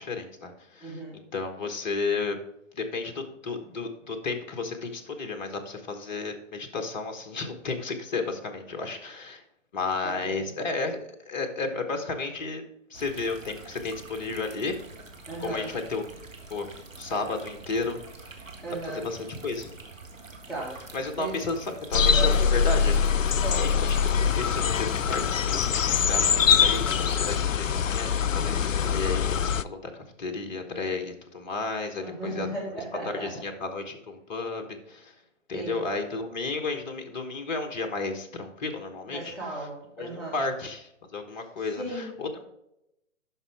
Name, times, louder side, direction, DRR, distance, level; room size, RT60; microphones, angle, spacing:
voice 1, 0.0-1.0 1.3-2.4 2.7-9.4 9.7-11.0 11.2-12.6 12.9-14.8 15.4-16.0 16.5-16.7 17.0-18.3 18.8-19.7 20.9-32.5 33.1-35.1 35.5-39.3 40.0-42.4, left 3 dB, 35° left, 5 dB, 1.3 m, -33 dB
voice 2, 0.8-1.2 10.0-10.5 15.3-15.7 18.6-19.1 20.5-20.8 21.2-21.6 22.1-22.4 23.4-23.9 32.0-33.3 35.5-35.8 39.1-40.4 41.3-42.4, right 2 dB, ahead, -8 dB, 1.8 m, -36 dB
sound 1, 12.9-27.4, right 3 dB, 80° right, 1.8 m, -46 dB
sound 2, 21.9-29.6, left 7 dB, 80° left, 0.5 m, -23 dB
11.5 x 5.3 x 3.5 m, 0.84 s
figure-of-eight pair, 135°, 38 cm